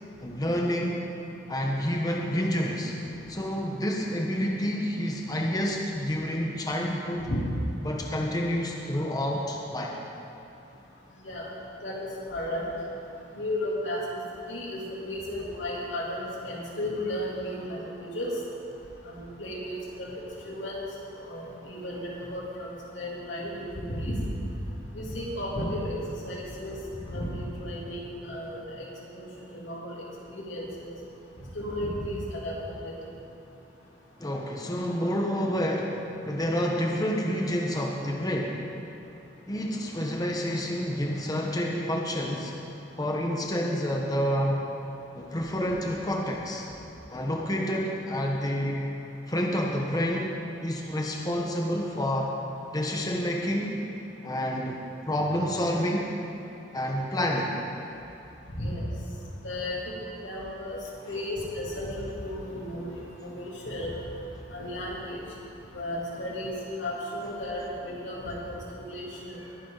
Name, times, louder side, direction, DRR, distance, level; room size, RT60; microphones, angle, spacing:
voice 1, 0.2-1.0 1.5-2.9 3.3-7.3 7.8-10.0 34.2-36.0 36.2-38.6 39.5-42.5 43.0-44.6 45.1-46.6 47.1-48.8 49.3-50.3 50.6-52.3 52.7-53.8 54.2-54.8 55.0-56.1 56.7-57.6, equal, 20° left, -1 dB, 1.1 m, -28 dB
voice 2, 11.8-12.6 13.3-14.0 14.5-18.3 19.1-20.8 21.2-24.2 24.9-26.0 26.2-26.8 27.1-28.9 29.1-29.9 30.3-30.9 31.5-32.5 32.8-32.9 58.5-58.9 59.4-59.8 60.2-60.8 61.0-63.9 64.5-65.2 65.7-69.4, left 1 dB, 90° left, -5 dB, 3.2 m, -34 dB
21.5 x 9.6 x 4.0 m, 2.8 s
head